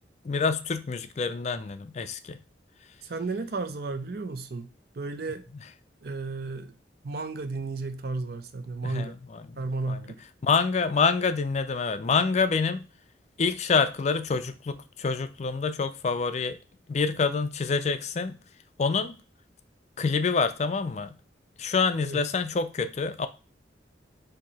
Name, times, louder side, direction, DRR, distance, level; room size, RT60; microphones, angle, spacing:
voice 1, 0.2-2.4 8.8-9.4 9.9-10.0 10.4-12.8 13.4-16.6 16.9-18.4 18.8-19.1 20.0-21.2 21.6-23.3, left 5 dB, 40° left, 0.4 m, -26 dB
voice 2, 3.0-5.5 6.0-6.7 7.0-9.2 9.6-10.2 22.0-22.2, right 3 dB, 60° right, 0.5 m, -33 dB
4.6 x 2.7 x 4.1 m
head